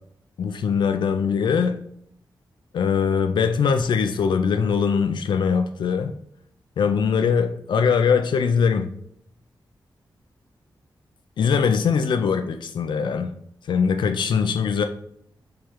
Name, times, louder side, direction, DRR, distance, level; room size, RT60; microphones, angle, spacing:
voice 1, 0.4-1.8 2.7-6.1 6.8-8.9 11.4-13.3 13.7-14.8, left 6 dB, 75° left, 0.3 m, -21 dB
4.5 x 3.1 x 3.6 m
wide cardioid pair, 165°, 8 cm